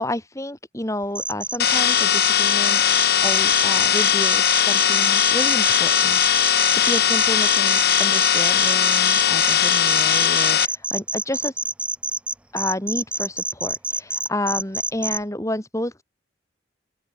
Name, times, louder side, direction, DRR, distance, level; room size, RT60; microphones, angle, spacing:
voice 1, 0.0-2.8 3.2-11.5 12.5-16.0, left 1 dB, 15° left, 3.2 m, -30 dB
sound 1, 1.2-15.2, right 2 dB, 5° right, 0.7 m, -27 dB
sound 2, 1.6-10.6, left 9 dB, 60° left, 1.4 m, -19 dB
open air
head